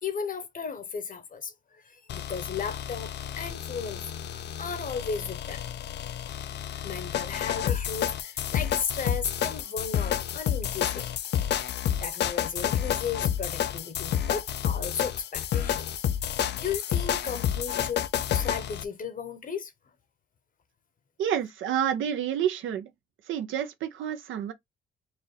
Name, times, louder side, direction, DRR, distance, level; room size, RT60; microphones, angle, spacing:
voice 1, 0.0-4.0 4.3-5.6 6.8-11.1 12.0-15.9 16.5-18.0 18.3-19.7, left 6 dB, 45° left, 0.9 m, -35 dB
sound 1, 2.1-18.8, left 10 dB, 60° left, 0.5 m, -30 dB
voice 2, 21.2-22.9 23.3-24.5, right 9 dB, 80° right, 0.8 m, -29 dB
4.6 x 2.5 x 3.1 m
cardioid pair, 90°, 20 cm